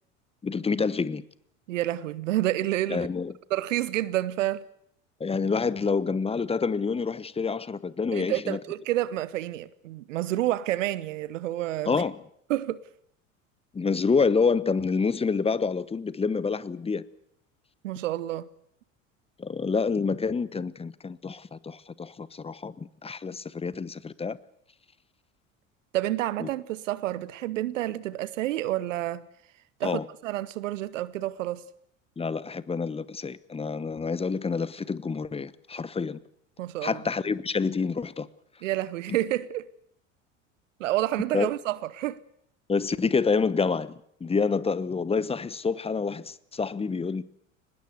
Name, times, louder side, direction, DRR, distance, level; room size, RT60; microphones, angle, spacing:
voice 1, 0.4-1.3 2.9-3.3 5.2-8.6 11.9-12.2 13.7-17.0 19.4-24.4 26.4-26.5 29.8-30.1 32.2-36.2 36.8-38.3 41.3-41.5 42.7-47.2, left 5 dB, 15° left, 1.0 m, -27 dB
voice 2, 1.7-3.1 3.5-4.7 8.1-11.9 12.5-12.8 17.8-18.5 25.9-29.3 29.8-31.6 36.6-37.0 38.6-39.6 40.8-42.2, right 14 dB, 70° right, 1.0 m, -29 dB
24.0 x 20.5 x 8.0 m
figure-of-eight pair, 70°, 40 cm